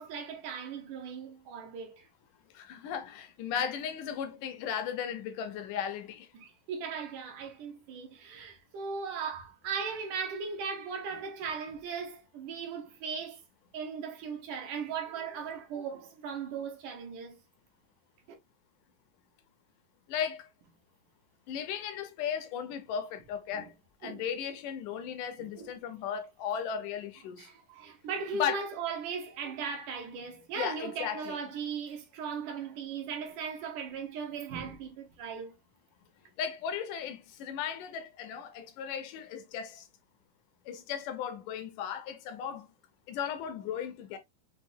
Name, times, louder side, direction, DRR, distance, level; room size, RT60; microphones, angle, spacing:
voice 1, 0.0-2.1 6.4-13.4 13.7-17.4 23.5-23.6 24.0-24.3 25.6-25.7 27.4-35.5, right 6 dB, 70° right, 2.3 m, -38 dB
voice 2, 2.5-6.3 20.1-20.5 21.5-23.7 24.0-27.5 28.3-28.6 30.6-31.4 36.4-39.9 40.7-42.7 43.1-44.2, left 8 dB, 75° left, 2.1 m, -36 dB
6.4 x 2.6 x 2.6 m
omnidirectional pair, 3.9 m